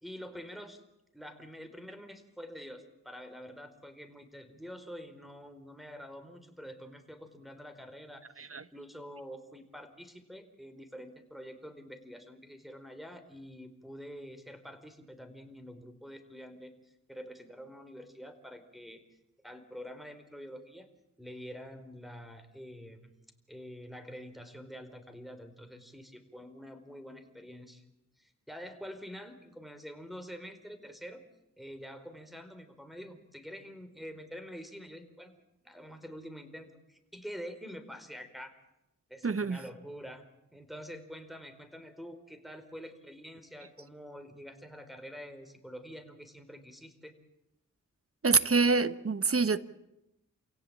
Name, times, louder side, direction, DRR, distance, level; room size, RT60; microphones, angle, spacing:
voice 1, 0.0-0.8 1.1-19.0 19.4-20.9 21.2-23.1 23.5-27.8 28.2-31.2 31.6-35.3 35.6-38.5 39.1-40.3 40.5-47.2, equal, ahead, 4.4 m, -47 dB
voice 2, 39.2-39.6 48.2-49.6, right 4 dB, 45° right, 1.2 m, -26 dB
29.0 x 17.0 x 8.8 m
cardioid pair, 50°, 31 cm